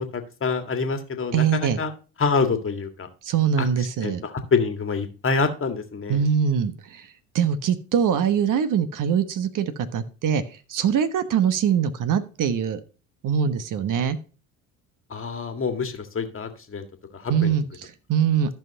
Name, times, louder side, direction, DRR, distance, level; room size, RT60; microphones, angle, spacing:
voice 1, 0.0-1.9 2.2-3.1 3.6-3.7 4.0-6.2 15.1-16.9 17.1-17.6, left 4 dB, 30° left, 7 dB, 1.8 m, -26 dB
voice 2, 1.3-1.8 3.2-4.2 6.1-7.1 7.3-10.4 10.7-12.8 13.2-14.2 17.3-18.5, right 8 dB, 45° right, 11 dB, 1.2 m, -23 dB
14.0 x 5.8 x 2.9 m, 0.35 s
hypercardioid pair, 65°, 43 cm